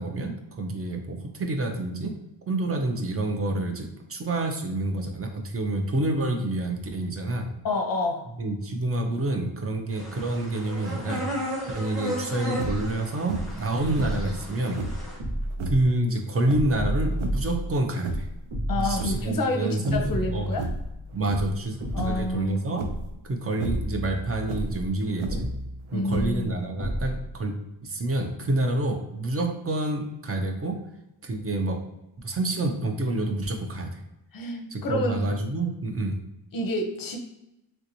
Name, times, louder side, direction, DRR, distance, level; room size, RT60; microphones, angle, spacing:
voice 1, 0.0-2.1 2.5-7.5 8.4-11.2 11.7-14.8 15.7-18.3 18.8-20.5 21.1-21.8 22.0-22.8 23.3-25.5 25.9-27.5 27.8-30.7 31.2-31.8 32.2-34.0 34.7-36.2, right 2 dB, 30° right, 4 dB, 0.4 m, -28 dB
voice 2, 7.6-8.2 18.7-20.6 21.9-22.8 25.9-26.5 34.3-35.4 36.5-37.2, left 1 dB, 45° left, 4 dB, 0.6 m, -28 dB
sound 1, 9.9-15.2, equal, ahead, 0.8 m, -35 dB
sound 2, 12.5-12.9 13.3-13.7 13.9-15.1 15.5-15.9 16.4-17.6 17.9-18.4 18.8-19.6 19.8-20.2 20.5-20.9 21.3-21.6 21.9-22.3 22.8-23.1 23.5-23.9 24.4-25.6 26.1-26.6, right 2 dB, 80° right, 0.6 m, -32 dB
sound 3, 15.2-15.8 16.7-17.8 18.5-19.1 20.0-21.1 21.8-22.4 23.6-24.7 25.3-25.9 26.8-27.4, equal, 50° right, 1.1 m, -32 dB
3.4 x 2.8 x 2.6 m, 0.89 s
wide cardioid pair, 150°, 48 cm